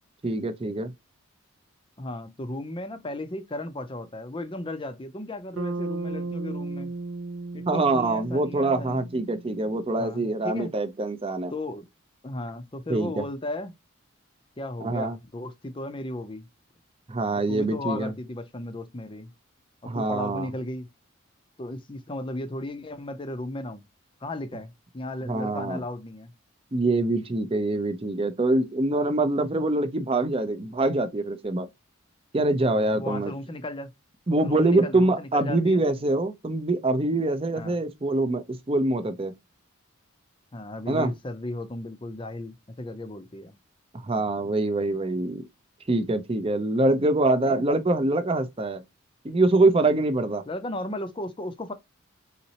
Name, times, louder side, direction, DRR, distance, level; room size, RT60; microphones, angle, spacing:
voice 1, 0.2-0.9 7.7-11.5 12.9-13.2 14.8-15.2 17.1-18.1 19.8-20.5 25.3-25.8 26.7-31.7 32.3-33.3 34.3-39.3 40.9-41.1 44.0-45.4 45.9-48.8 49.2-50.4, right 2 dB, 25° right, 0.6 m, -24 dB
voice 2, 2.0-6.9 7.5-9.1 10.0-10.7 11.5-11.9 12.2-13.7 14.6-16.5 17.5-19.3 19.8-20.9 21.6-23.8 24.2-26.3 32.7-33.9 34.4-35.8 37.6-37.8 40.5-43.5 47.5-47.7 50.5-51.7, left 1 dB, 25° left, 0.5 m, -35 dB
Bass guitar, 5.6-9.9, right 3 dB, 75° right, 0.7 m, -35 dB
4.2 x 3.9 x 2.8 m
head